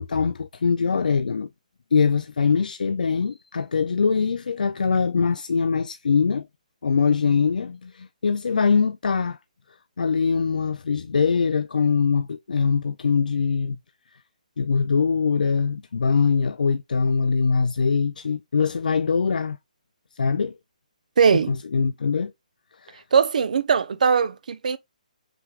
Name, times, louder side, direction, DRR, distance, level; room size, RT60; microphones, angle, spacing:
voice 1, 0.0-1.5 1.9-6.5 6.8-9.4 10.0-13.8 14.6-19.6 20.1-20.6 21.5-22.3 22.8-23.0, left 5 dB, 85° left, 0.5 m, -22 dB
voice 2, 21.2-21.6 23.1-24.8, right 6 dB, 65° right, 0.7 m, -20 dB
5.9 x 3.3 x 2.4 m
hypercardioid pair, 160°, 4 cm